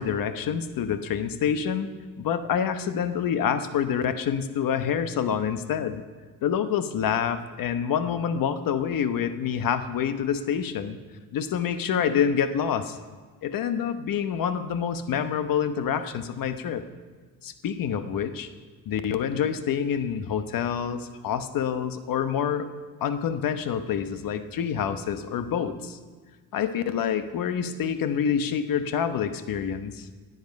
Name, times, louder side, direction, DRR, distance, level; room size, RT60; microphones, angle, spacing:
voice 1, 0.0-1.9 2.2-6.0 6.4-11.0 11.3-13.0 13.4-16.8 17.4-18.5 18.9-22.7 23.0-26.0 26.5-30.1, left 8 dB, 70° left, 10 dB, 1.0 m, -27 dB
20.0 x 7.9 x 5.2 m, 1.4 s
cardioid pair, 105°, 35 cm